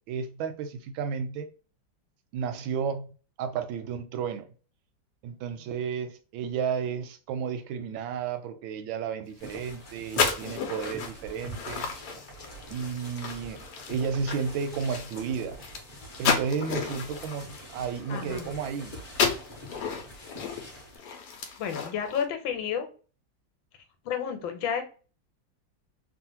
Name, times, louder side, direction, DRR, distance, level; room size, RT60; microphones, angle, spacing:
voice 1, 0.1-1.5 2.3-4.5 5.2-11.9 12.7-15.6 16.2-19.0, right 6 dB, 90° right, 1.4 m, -32 dB
sound 1, 9.4-18.8 19.1-22.2, left 5 dB, 70° left, 1.1 m, -33 dB
sound 2, 9.4-21.0, equal, 35° left, 0.8 m, -45 dB
voice 2, 18.1-18.5 21.6-22.9 24.0-24.8, left 8 dB, 90° left, 1.4 m, -31 dB
3.1 x 2.4 x 2.7 m
omnidirectional pair, 2.1 m